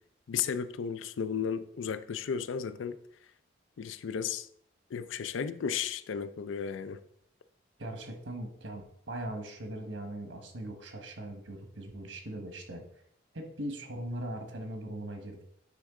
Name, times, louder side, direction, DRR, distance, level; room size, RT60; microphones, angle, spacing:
voice 1, 0.3-3.0 3.8-4.5 4.9-7.0, left 7 dB, 75° left, 0.4 m, -34 dB
voice 2, 7.8-12.8 13.3-15.4, right 1 dB, 75° right, 1.3 m, -40 dB
9.4 x 3.6 x 3.7 m
head